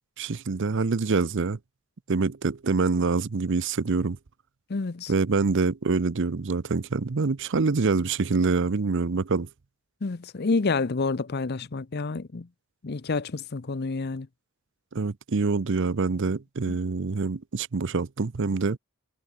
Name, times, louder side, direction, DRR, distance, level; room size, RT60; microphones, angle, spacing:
voice 1, 0.2-1.6 2.1-4.2 5.1-9.5 14.9-18.8, right 4 dB, 55° right, 0.6 m, -25 dB
voice 2, 4.7-5.1 10.0-12.5 12.8-14.3 16.7-16.8, left 3 dB, 45° left, 0.6 m, -28 dB
head